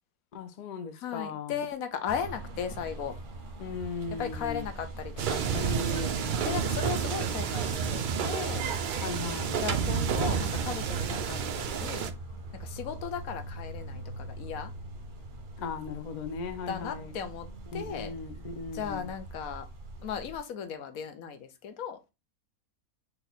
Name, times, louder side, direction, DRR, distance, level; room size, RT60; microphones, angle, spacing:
voice 1, 0.3-1.6 3.6-4.7 5.6-6.6 9.0-9.6 15.6-17.1 17.7-19.1, left 5 dB, 60° left, 0.4 m, -38 dB
voice 2, 0.9-3.1 4.2-6.1 6.4-8.7 9.5-12.1 12.6-14.7 16.7-17.5 17.7-18.1 18.7-19.7 20.0-22.0, left 7 dB, 80° left, 1.2 m, -36 dB
sound 1, 2.1-20.4, right 2 dB, 45° right, 0.7 m, -42 dB
sound 2, 5.2-12.1, right 7 dB, 85° right, 0.4 m, -30 dB
4.3 x 2.8 x 4.0 m
omnidirectional pair, 1.5 m